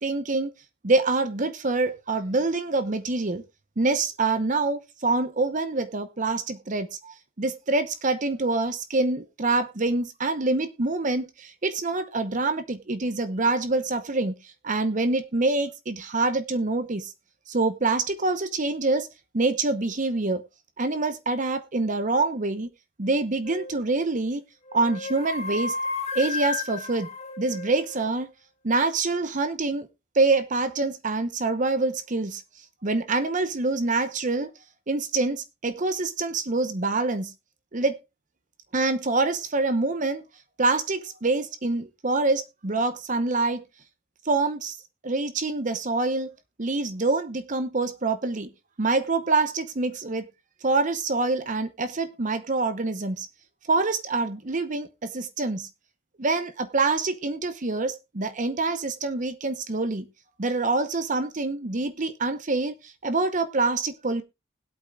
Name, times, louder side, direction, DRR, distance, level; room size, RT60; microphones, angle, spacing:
voice 1, 0.0-0.5 0.8-3.4 3.8-17.1 17.5-19.1 19.3-20.4 20.8-22.7 23.0-24.4 24.7-25.8 26.1-27.1 27.4-28.3 28.6-29.9 30.1-32.4 32.8-34.5 34.9-37.3 37.7-38.0 38.7-40.2 40.6-43.6 44.2-44.8 45.0-46.3 46.6-48.5 48.8-50.3 50.6-53.3 53.7-55.7 56.2-60.1 60.4-64.2, right 3 dB, 40° right, 0.8 m, -26 dB
sound 1, 23.4-23.9 24.6-28.1, left 3 dB, 35° left, 2.1 m, -33 dB
20.5 x 8.4 x 2.3 m
head